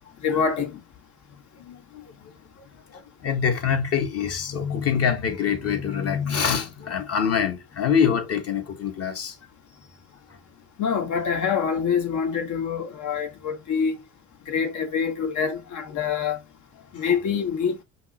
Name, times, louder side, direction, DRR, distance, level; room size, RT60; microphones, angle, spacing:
voice 1, 0.2-0.8 10.8-14.0 14.5-16.4 16.9-17.8, left 6 dB, 60° left, 1.4 m, -25 dB
voice 2, 1.6-2.0 2.9-9.3 17.0-17.1, left 7 dB, 45° left, 1.4 m, -25 dB
5.7 x 2.0 x 4.2 m
cardioid pair, 95°, 34 cm